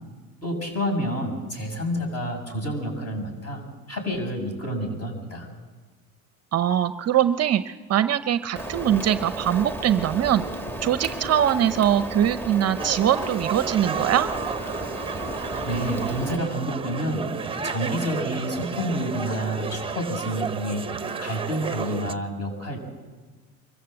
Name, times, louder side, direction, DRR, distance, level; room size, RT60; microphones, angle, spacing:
voice 1, 0.4-3.6 3.9-5.5 15.4-20.9 21.2-22.8, equal, 35° left, 4 dB, 6.8 m, -29 dB
voice 2, 6.5-10.4 10.8-14.3, right 10 dB, 40° right, 12 dB, 0.7 m, -22 dB
Rain, 8.6-16.4, right 1 dB, 5° left, 1.5 m, -33 dB
sound 1, 12.8-22.1, right 5 dB, 15° right, 0.9 m, -32 dB
24.5 x 14.5 x 7.8 m, 1.3 s
supercardioid pair, 95°, 42 cm